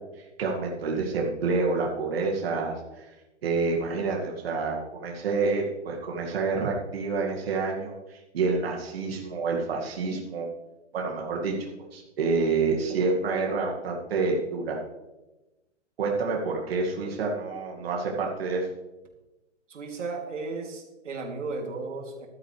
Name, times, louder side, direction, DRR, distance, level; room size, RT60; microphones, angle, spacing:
voice 1, 0.4-3.1 3.4-10.5 10.9-11.5 11.9-14.8 16.0-18.7, right 4 dB, 55° right, -1 dB, 2.1 m, -28 dB
voice 2, 19.7-22.3, right 3 dB, 80° right, 2 dB, 2.9 m, -35 dB
14.5 x 12.0 x 3.3 m, 1.1 s
hypercardioid pair, 160°, 36 cm